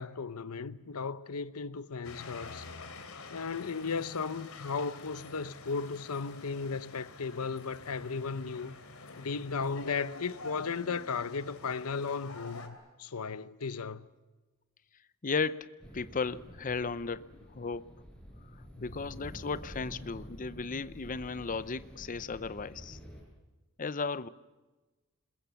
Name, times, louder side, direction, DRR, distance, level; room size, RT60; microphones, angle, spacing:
voice 1, 0.0-2.7 3.3-8.8 9.2-14.1 18.8-19.0, left 5 dB, 90° left, 0.8 m, -36 dB
sound 1, 2.0-12.7, left 3 dB, 75° left, 3.1 m, -48 dB
voice 2, 15.2-18.0 18.5-23.0 23.8-24.3, left 4 dB, 40° left, 0.7 m, -35 dB
sound 2, 15.8-23.2, equal, 5° left, 5.7 m, -49 dB
27.0 x 21.0 x 7.1 m
head